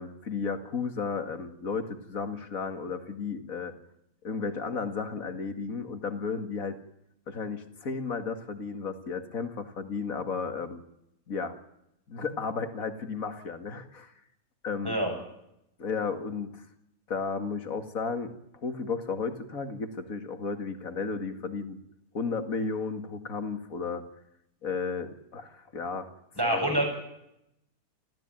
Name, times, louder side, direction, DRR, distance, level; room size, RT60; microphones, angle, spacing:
voice 1, 0.0-3.7 4.2-6.8 7.3-10.8 11.3-11.6 12.1-14.1 14.6-15.0 15.8-16.6 17.1-18.3 18.6-21.8 22.1-24.1 24.6-26.1 26.5-26.7, left 5 dB, 65° left, 8 dB, 2.5 m, -33 dB
voice 2, 26.4-26.9, right 1 dB, 15° right, 1 dB, 8.1 m, -26 dB
30.0 x 14.0 x 9.2 m, 0.80 s
omnidirectional pair, 1.6 m